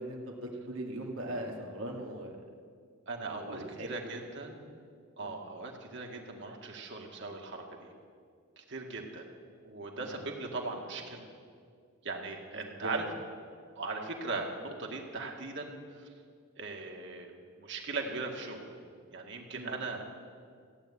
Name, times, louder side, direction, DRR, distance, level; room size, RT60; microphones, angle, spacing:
voice 1, 0.0-2.3 3.3-4.1 5.2-5.3 10.0-10.2 12.8-13.0 19.5-19.7, right 1 dB, 85° right, 1 dB, 2.2 m, -40 dB
voice 2, 3.1-4.7 5.2-7.9 8.6-9.2 9.6-11.3 12.0-13.1 13.8-16.1 16.6-18.7 19.1-20.0, right 3 dB, 60° right, 1 dB, 2.0 m, -39 dB
15.5 x 9.5 x 8.4 m, 2.1 s
head